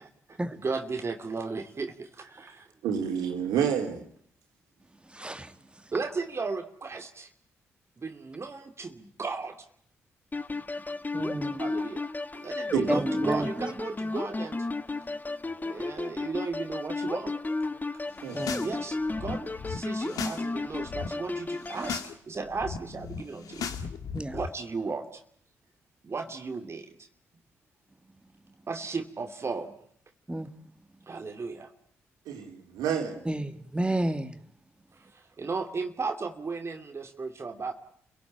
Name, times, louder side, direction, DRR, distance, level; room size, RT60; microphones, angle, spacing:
voice 1, 0.0-2.7 5.9-7.3 8.0-9.6 10.5-10.7 11.6-12.1 12.3-14.7 15.6-17.4 18.6-23.7 24.3-25.2 26.0-27.0 28.7-29.8 31.1-31.7 34.9-37.7, right 4 dB, 45° right, 2.6 m, -35 dB
voice 2, 2.8-4.0 12.7-12.9 13.2-13.3 18.2-18.4 32.3-33.2, right 8 dB, 80° right, 4.1 m, -29 dB
voice 3, 5.0-5.8 11.1-11.6 12.9-13.7 18.3-18.7 21.8-21.9 24.1-24.4 30.3-30.5 33.2-34.4, right 1 dB, 15° right, 2.5 m, -31 dB
sound 1, 10.3-22.0, left 3 dB, 25° left, 1.6 m, -33 dB
sound 2, 18.2-18.7 19.0-20.4 20.7-21.1 21.6-22.1 22.4-24.5, left 6 dB, 70° left, 2.2 m, -37 dB
29.5 x 17.5 x 8.8 m
hypercardioid pair, 45°, 6 cm